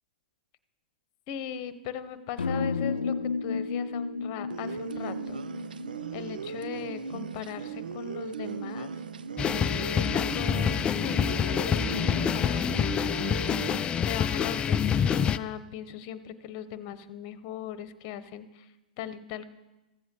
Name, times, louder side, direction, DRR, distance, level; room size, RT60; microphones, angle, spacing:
voice 1, 1.3-5.4 6.1-8.9 9.9-13.3 14.0-18.7 19.0-19.4, left 9 dB, 45° left, 13 dB, 1.0 m, -39 dB
sound 1, 2.4-6.5, left 4 dB, 85° left, 0.5 m, -32 dB
sound 2, 4.5-13.8, right 6 dB, 75° right, 0.6 m, -37 dB
sound 3, 9.4-15.4, left 7 dB, 20° left, 0.4 m, -27 dB
14.5 x 8.0 x 6.8 m, 1.0 s
hypercardioid pair, 110°, 5 cm